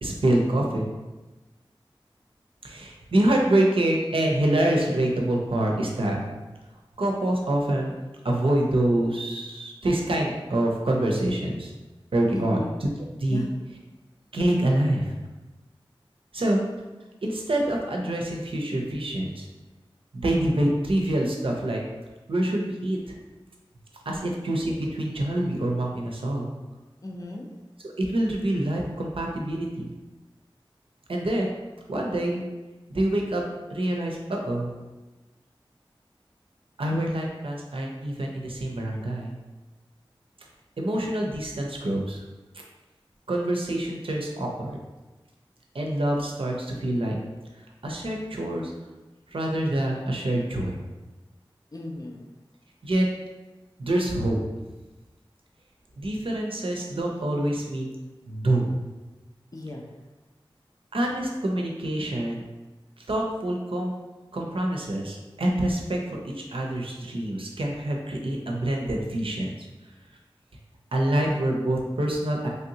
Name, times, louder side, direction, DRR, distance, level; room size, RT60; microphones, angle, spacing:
voice 1, 0.0-0.9 2.6-6.2 7.0-7.9 8.2-11.7 12.1-12.9 13.2-13.4 14.3-15.1 16.3-16.6 17.2-19.5 20.1-21.8 22.3-23.0 24.1-26.5 27.8-29.9 31.1-31.5 31.9-32.4 32.9-33.4 33.7-34.7 36.8-39.3 40.8-42.2 43.3-44.7 45.7-47.2 47.8-48.7 49.3-50.8 52.8-53.1 53.8-54.4 56.0-57.9 58.3-58.7 60.9-62.5 63.1-63.9 64.3-69.5 70.9-72.5, right 1 dB, 70° right, -1 dB, 0.5 m, -26 dB
voice 2, 12.3-12.7 13.3-13.5 24.1-24.3 27.0-27.5 51.7-52.2 59.5-59.9, left 1 dB, 40° left, 1 dB, 0.5 m, -35 dB
3.3 x 2.6 x 2.8 m, 1.2 s
wide cardioid pair, 55°, 9 cm